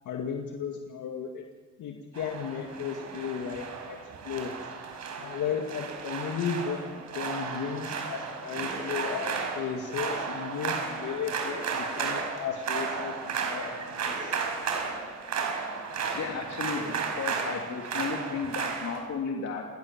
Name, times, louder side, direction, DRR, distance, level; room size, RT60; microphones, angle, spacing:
voice 1, 0.1-1.4 1.8-4.0 4.2-4.5 5.2-6.8 7.1-14.4, left 7 dB, 80° left, 2 dB, 2.3 m, -34 dB
sound 1, 2.1-19.0, right 5 dB, 65° right, 5.3 m, -34 dB
voice 2, 16.1-19.7, left 5 dB, 65° left, 0 dB, 3.3 m, -34 dB
28.5 x 19.5 x 7.4 m, 1.4 s
cardioid pair, 90°, 30 cm